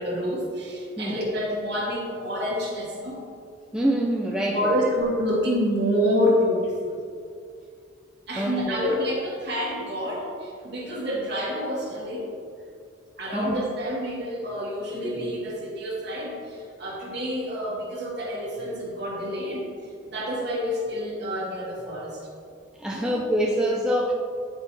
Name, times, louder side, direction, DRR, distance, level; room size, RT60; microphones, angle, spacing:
voice 1, 0.0-3.3 4.5-7.0 8.3-12.3 13.2-19.7 20.1-22.2 22.9-23.1, equal, 55° right, -4 dB, 1.5 m, -28 dB
voice 2, 3.7-4.8 8.4-9.0 13.3-13.6 22.8-24.1, right 1 dB, 5° right, -3 dB, 0.4 m, -25 dB
9.5 x 4.3 x 3.0 m, 2.3 s
head